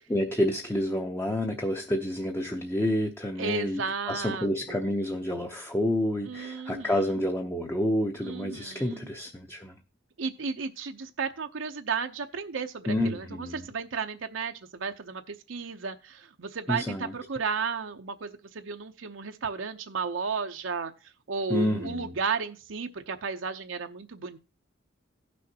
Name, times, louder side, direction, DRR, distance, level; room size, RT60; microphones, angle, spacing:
voice 1, 0.0-9.8 12.9-13.7 16.7-17.1 21.5-22.2, left 1 dB, 10° left, 0.7 m, -29 dB
voice 2, 3.4-4.9 6.2-7.2 8.2-9.1 10.2-24.4, right 5 dB, 80° right, 0.7 m, -34 dB
16.0 x 6.3 x 2.8 m
head